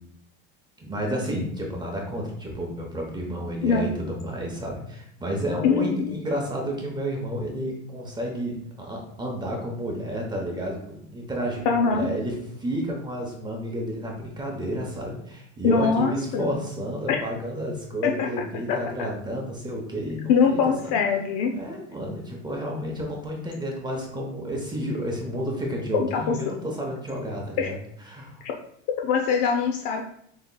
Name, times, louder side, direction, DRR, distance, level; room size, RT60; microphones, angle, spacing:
voice 1, 0.8-20.9 21.5-27.8 28.1-28.4, equal, 15° right, -1 dB, 0.7 m, -31 dB
voice 2, 5.6-5.9 11.7-12.1 15.6-16.6 17.1-17.2 18.0-18.3 18.7-18.8 20.3-21.5 25.9-26.4 27.6-27.7 28.4-28.5 29.0-30.0, left 6 dB, 60° left, 2 dB, 0.6 m, -22 dB
6.7 x 2.9 x 2.2 m, 0.70 s
supercardioid pair, 135°, 34 cm